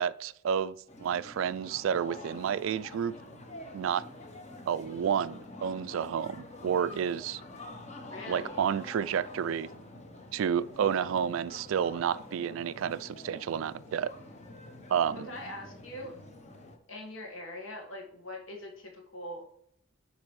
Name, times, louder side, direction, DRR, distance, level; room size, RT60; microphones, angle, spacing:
voice 1, 0.0-3.2 3.7-4.0 4.7-7.4 8.3-9.7 10.3-14.1 14.9-15.2, right 8 dB, 70° right, 17 dB, 0.3 m, -30 dB
sound 1, 0.9-16.8, left 2 dB, 35° left, 0.9 m, -47 dB
voice 2, 8.1-8.7 15.1-16.1 16.9-19.5, left 1 dB, 70° left, 1 dB, 1.6 m, -42 dB
9.5 x 4.0 x 3.1 m, 0.70 s
head